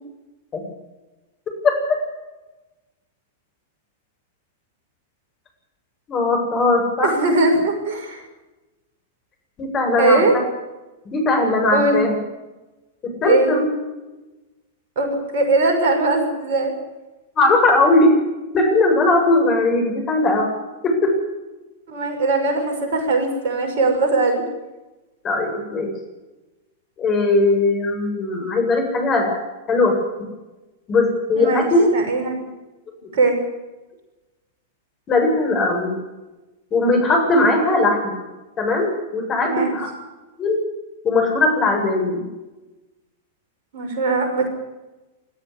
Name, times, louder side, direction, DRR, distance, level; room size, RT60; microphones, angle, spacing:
voice 1, 6.1-7.2 9.6-10.2 11.1-12.1 13.0-13.7 17.4-18.2 18.5-20.5 20.8-21.2 25.2-25.9 27.0-29.4 29.7-30.3 30.9-31.9 35.1-35.9 36.7-38.1 38.6-39.9 40.4-40.6 41.0-42.3, left 2 dB, 30° left, 3 dB, 7.9 m, -19 dB
voice 2, 7.0-8.2 10.0-10.3 11.7-12.0 13.2-13.5 15.0-15.1 15.3-16.7 21.9-24.4 31.4-31.7 31.9-32.3 33.1-33.4 39.4-39.7 43.7-44.5, right 3 dB, 55° right, 4 dB, 6.0 m, -20 dB
22.0 x 13.5 x 9.6 m, 1.1 s
figure-of-eight pair, 100°, 0 cm